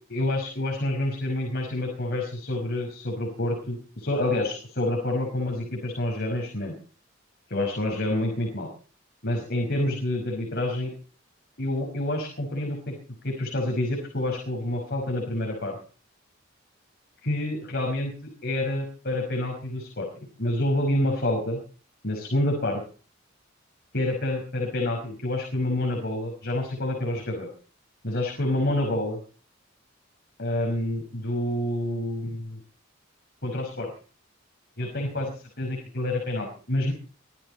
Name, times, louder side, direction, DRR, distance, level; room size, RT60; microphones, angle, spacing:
voice 1, 0.1-6.7 7.5-8.7 9.2-10.9 11.6-13.0 13.2-15.8 17.2-18.1 18.4-20.1 20.4-21.6 22.0-22.8 23.9-27.5 28.0-29.2 30.4-32.6 33.4-33.9 34.8-36.9, left 1 dB, 55° left, 1 dB, 5.6 m, -28 dB
24.5 x 13.5 x 4.3 m, 0.41 s
head